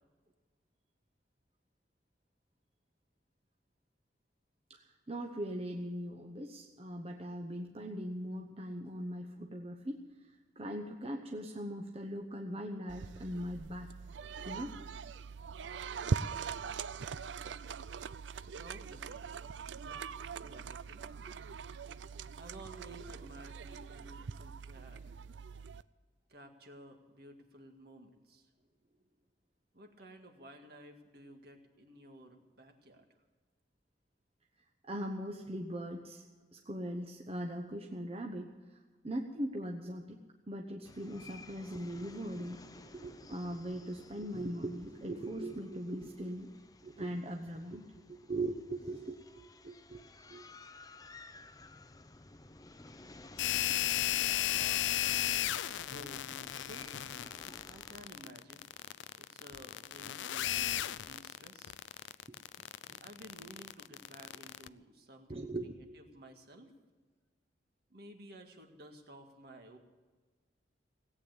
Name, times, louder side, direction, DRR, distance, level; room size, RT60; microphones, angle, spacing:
voice 1, 4.7-13.9 14.4-14.7 21.3-21.4 34.8-36.2 36.5-38.8 39.0-40.2 40.5-46.5 46.8-49.2 49.6-50.0 50.3-50.4 57.3-57.4 62.3-62.4 62.9-63.0 65.3-65.8, right 1 dB, 35° right, 2 dB, 1.0 m, -40 dB
sound 1, 12.9-25.8, right 5 dB, 85° right, 0.5 m, -42 dB
voice 2, 18.4-21.1 22.4-25.2 26.3-28.5 29.7-33.1 54.5-56.9 57.7-58.7 59.1-61.7 63.0-66.8 67.9-69.8, right 1 dB, 60° right, 4 dB, 2.0 m, -54 dB
sound 2, 40.8-58.1, left 3 dB, 20° left, 0.6 m, -55 dB
sound 3, 53.4-64.7, left 13 dB, 85° left, 0.4 m, -35 dB
18.0 x 8.9 x 8.1 m, 1.4 s
head